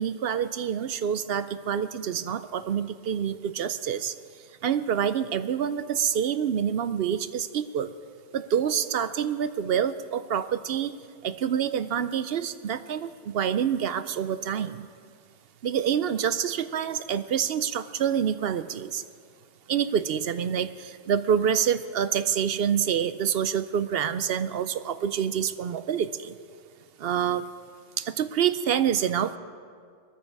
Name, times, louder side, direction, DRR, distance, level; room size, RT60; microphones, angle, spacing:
voice 1, 0.0-4.1 4.6-7.9 8.3-11.0 11.2-14.9 15.6-19.0 19.7-26.3 27.0-27.5 28.0-29.4, right 8 dB, 60° right, 13 dB, 0.7 m, -27 dB
20.0 x 14.0 x 4.7 m, 2.1 s
omnidirectional pair, 1.3 m